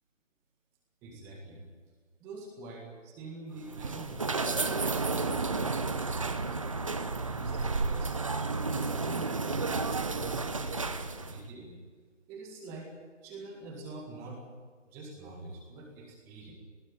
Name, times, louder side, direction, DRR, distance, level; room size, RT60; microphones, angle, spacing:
voice 1, 1.0-1.6 2.2-6.7 7.3-8.3 8.6-11.7 12.3-12.9 13.2-14.4 14.9-16.5, right 2 dB, 5° right, 1 dB, 1.8 m, -45 dB
sound 1, 3.6-11.4, right 3 dB, 25° right, 0.9 m, -32 dB
20.0 x 16.0 x 9.9 m, 1.5 s
figure-of-eight pair, 160°, 37 cm